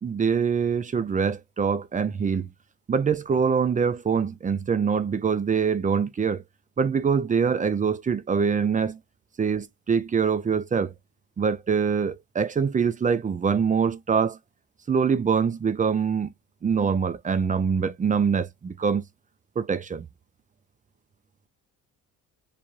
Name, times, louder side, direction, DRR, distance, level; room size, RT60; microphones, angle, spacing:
voice 1, 0.0-2.5 2.9-6.4 6.8-9.0 9.4-10.9 11.4-14.4 14.9-16.3 16.6-19.0 19.6-20.0, right 6 dB, 20° right, 0.4 m, -24 dB
3.1 x 2.1 x 2.5 m
hypercardioid pair, 55°, 47 cm